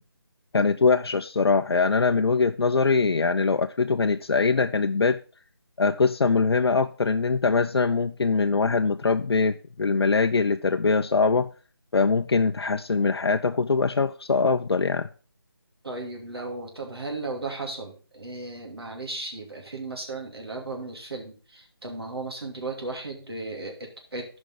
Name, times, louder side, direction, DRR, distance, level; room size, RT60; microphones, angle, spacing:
voice 1, 0.5-5.2 5.8-11.5 11.9-15.1, left 4 dB, 85° left, 0.5 m, -22 dB
voice 2, 15.8-24.2, right 2 dB, 80° right, 2.6 m, -35 dB
13.0 x 5.3 x 3.8 m
figure-of-eight pair, 180°, 13 cm